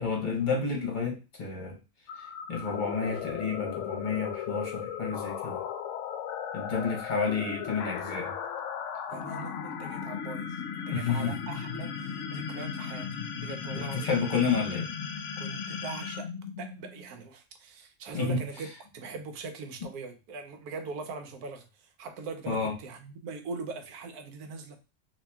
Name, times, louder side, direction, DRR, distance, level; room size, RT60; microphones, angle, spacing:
voice 1, 0.0-1.8 2.5-5.6 6.5-8.3 10.9-11.4 13.7-14.9 18.1-18.4 22.5-22.7, left 5 dB, 35° left, 0.9 m, -30 dB
sound 1, 2.1-17.2, left 7 dB, 65° left, 0.8 m, -36 dB
voice 2, 9.1-14.1 15.4-16.3 16.6-24.8, right 4 dB, 85° right, 1.2 m, -41 dB
2.9 x 2.8 x 3.4 m
omnidirectional pair, 1.6 m